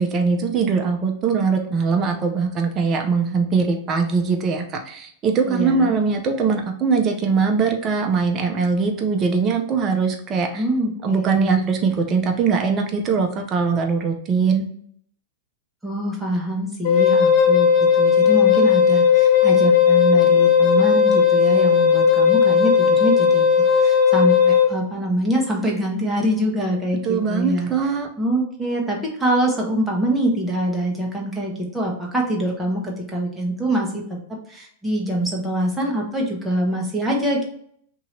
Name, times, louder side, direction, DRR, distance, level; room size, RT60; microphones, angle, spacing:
voice 1, 0.0-10.6 11.0-14.7 27.0-28.1, right 5 dB, 30° right, 3 dB, 0.6 m, -21 dB
voice 2, 5.5-6.0 10.5-11.6 15.8-17.7 18.0-23.4 23.8-27.7 28.2-34.0 34.3-37.5, right 1 dB, 5° right, -2 dB, 1.1 m, -24 dB
Wind instrument woodwind instrument, 16.8-24.7, left 7 dB, 50° left, 0.8 m, -16 dB
2.8 x 2.7 x 4.3 m, 0.63 s
hypercardioid pair, 110°, 0 cm